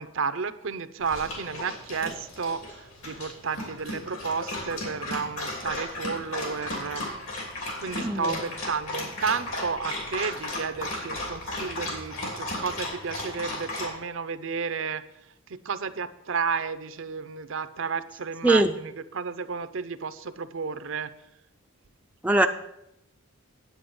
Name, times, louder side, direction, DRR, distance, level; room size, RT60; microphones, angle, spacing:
voice 1, 0.0-7.1 7.3-15.0 15.5-21.1, right 5 dB, 65° right, 12 dB, 0.6 m, -32 dB
Dog, 1.0-13.9, left 1 dB, 70° left, 3.2 m, -35 dB
voice 2, 8.0-8.4 18.4-18.7 22.2-22.5, right 2 dB, 5° right, 5 dB, 0.4 m, -21 dB
10.0 x 8.6 x 5.3 m, 0.82 s
head